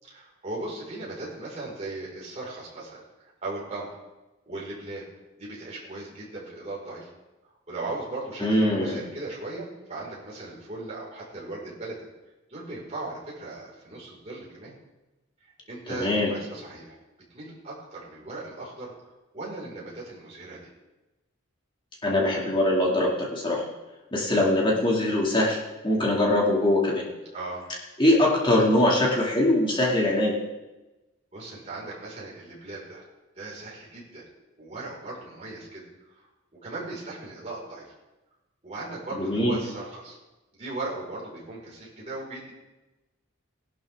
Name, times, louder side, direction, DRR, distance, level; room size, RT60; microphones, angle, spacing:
voice 1, 0.0-4.0 4.5-5.0 5.4-7.1 7.7-12.0 12.5-14.7 15.7-17.0 17.3-20.7 27.3-27.6 31.3-33.0 33.3-34.2 34.6-36.3 36.6-37.9 38.6-40.2 40.5-42.5, right 2 dB, 30° right, -6 dB, 4.8 m, -38 dB
voice 2, 8.4-9.0 15.9-16.3 22.0-23.7 24.1-25.6 25.8-27.1 28.0-30.4 39.2-39.6, left 1 dB, 25° left, -3 dB, 2.3 m, -22 dB
18.0 x 11.5 x 3.6 m, 1.1 s
head